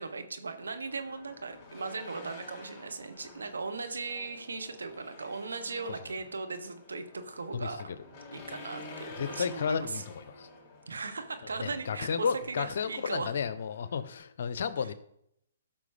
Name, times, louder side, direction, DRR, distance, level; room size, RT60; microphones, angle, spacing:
voice 1, 0.0-7.9 8.3-10.0 10.9-13.3 14.8-14.9, right 4 dB, 85° right, 8 dB, 1.2 m, -38 dB
Race car auto racing / Engine, 0.6-14.2, left 3 dB, 25° left, 3.4 m, -50 dB
voice 2, 9.2-10.5 11.6-14.9, left 6 dB, 65° left, 14 dB, 0.7 m, -32 dB
13.5 x 5.9 x 3.4 m, 0.74 s
hypercardioid pair, 140°, 0 cm